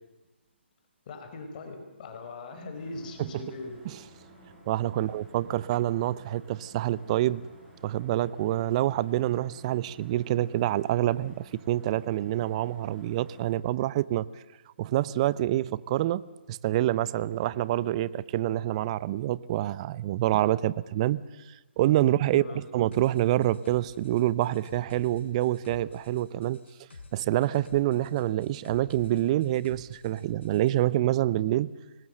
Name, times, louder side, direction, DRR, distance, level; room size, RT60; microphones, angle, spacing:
voice 1, 1.1-3.8 5.0-5.1 22.3-22.6, left 3 dB, 40° left, 5 dB, 4.7 m, -40 dB
sound 1, 2.7-13.5, right 1 dB, 10° right, 7.7 m, -53 dB
voice 2, 4.7-7.5 7.8-14.3 14.8-16.2 16.5-21.2 21.8-26.6 27.1-31.7, right 14 dB, 30° right, 20 dB, 0.7 m, -27 dB
sound 2, 22.9-30.8, left 4 dB, 70° left, 4.8 m, -50 dB
25.5 x 20.0 x 7.8 m, 1.1 s
figure-of-eight pair, 145°, 6 cm